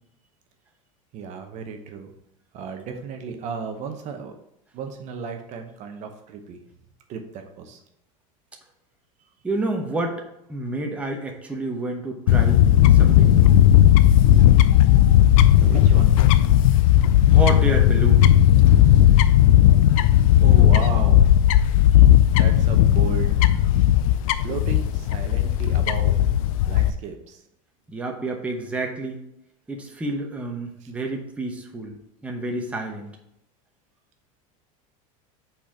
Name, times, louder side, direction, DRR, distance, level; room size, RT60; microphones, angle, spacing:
voice 1, 1.1-2.1 2.5-4.3 4.7-6.6 7.1-7.8 15.6-16.2 20.4-21.2 22.4-23.5 24.4-26.2 26.7-27.4 30.8-30.9, right 6 dB, 40° right, 5 dB, 0.8 m, -34 dB
voice 2, 9.4-13.3 17.3-18.3 27.9-29.2 29.7-33.1, right 2 dB, 5° right, 1 dB, 0.9 m, -29 dB
Fowl / Bird, 12.3-26.9, left 12 dB, 75° left, 0.5 m, -15 dB
5.4 x 4.4 x 5.9 m, 0.82 s
supercardioid pair, 140°, 18 cm